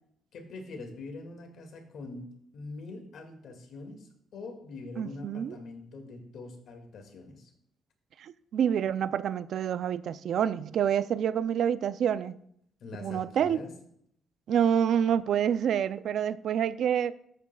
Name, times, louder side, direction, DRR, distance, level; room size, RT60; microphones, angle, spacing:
voice 1, 0.3-7.5 12.8-13.7, left 3 dB, 70° left, 2.0 m, -44 dB
voice 2, 5.0-5.6 8.2-12.4 13.0-13.6 14.5-17.1, right 9 dB, 70° right, 0.4 m, -27 dB
13.0 x 8.5 x 2.3 m
cardioid pair, 90°, 0 cm